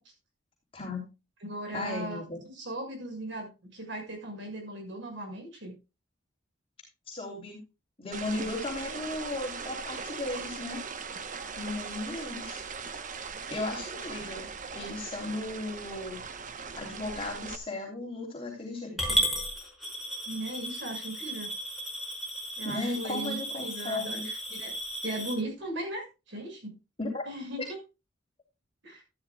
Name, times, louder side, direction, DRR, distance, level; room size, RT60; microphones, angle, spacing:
voice 1, 0.7-1.0 1.7-2.4 7.1-7.6 8.0-10.8 11.6-12.6 13.5-14.5 14.7-16.2 16.7-19.2 22.6-24.2 27.0-27.2, left 2 dB, 30° left, -1 dB, 3.3 m, -36 dB
voice 2, 1.4-2.2 2.5-5.7 12.1-12.2 20.3-21.5 22.6-24.7 25.0-26.7 27.3-27.8 28.8-29.0, right 1 dB, 70° right, 3 dB, 6.2 m, -38 dB
sound 1, 8.1-17.6, right 5 dB, 45° right, 1.1 m, -39 dB
Coin (dropping) / Glass, 19.0-25.3, equal, ahead, 5.6 m, -34 dB
13.5 x 12.0 x 2.3 m, 0.28 s
head